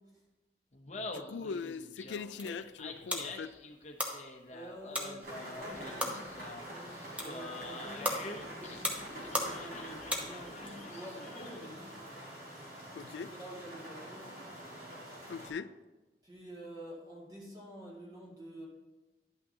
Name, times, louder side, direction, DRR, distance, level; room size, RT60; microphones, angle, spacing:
Laughter, 0.7-11.8, left 2 dB, 40° left, 0.8 m, -46 dB
voice 1, 0.9-3.5 12.9-13.3 15.3-15.7, left 5 dB, 85° left, 14 dB, 0.4 m, -41 dB
sound 1, 2.1-10.7, equal, 5° right, 0.9 m, -40 dB
voice 2, 4.5-6.3 6.6-12.0 13.3-14.3 16.2-18.7, equal, 25° right, -5 dB, 2.1 m, -48 dB
sound 2, 5.2-15.5, right 1 dB, 55° right, 3.4 m, -46 dB
11.0 x 8.6 x 2.8 m, 1.1 s
head